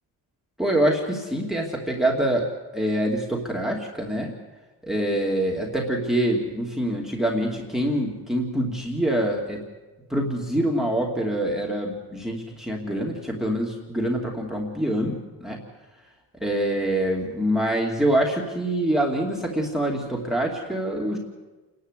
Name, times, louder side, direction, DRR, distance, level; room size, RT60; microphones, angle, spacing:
voice 1, 0.6-4.3 4.8-9.6 10.1-15.6 16.4-21.2, right 1 dB, ahead, -1 dB, 2.6 m, -25 dB
28.5 x 11.5 x 8.2 m, 1.2 s
cardioid pair, 110°, 44 cm